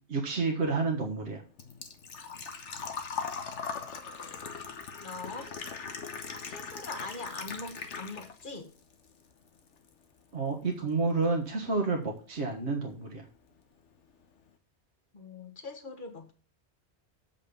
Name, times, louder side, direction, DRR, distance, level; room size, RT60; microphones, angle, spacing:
voice 1, 0.1-1.4 10.3-13.2, right 3 dB, 75° right, 1.7 m, -30 dB
Engine / Trickle dribble / Fill (with liquid), 0.6-8.6 8.9-9.9 10.2-10.3 12.2-12.3 12.5-12.8 13.2-13.3 13.5-13.6, left 6 dB, 90° left, 1.4 m, -40 dB
voice 2, 5.0-5.6 6.4-8.7 15.1-16.3, left 3 dB, 45° left, 1.6 m, -42 dB
7.5 x 5.9 x 6.8 m
omnidirectional pair, 1.2 m